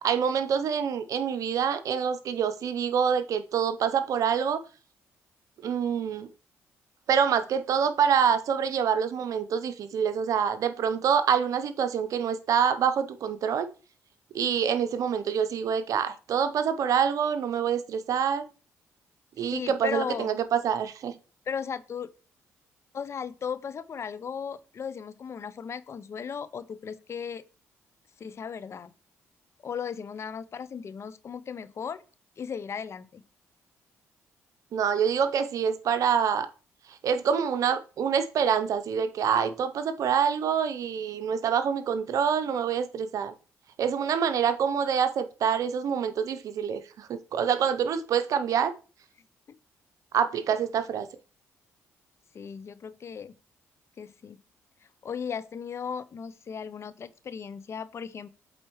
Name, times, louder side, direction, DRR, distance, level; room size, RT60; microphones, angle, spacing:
voice 1, 0.0-4.6 5.6-6.3 7.1-13.7 14.3-18.4 19.4-21.1 34.7-36.5 37.0-43.3 43.8-48.7 50.1-51.1, right 7 dB, 65° right, 0.7 m, -26 dB
voice 2, 19.5-20.4 21.5-22.1 22.9-27.4 28.2-28.9 29.6-32.0 32.4-33.2 52.3-53.3 54.0-54.4 55.0-58.3, left 7 dB, 50° left, 0.5 m, -36 dB
7.8 x 4.2 x 3.1 m
supercardioid pair, 60°, 6 cm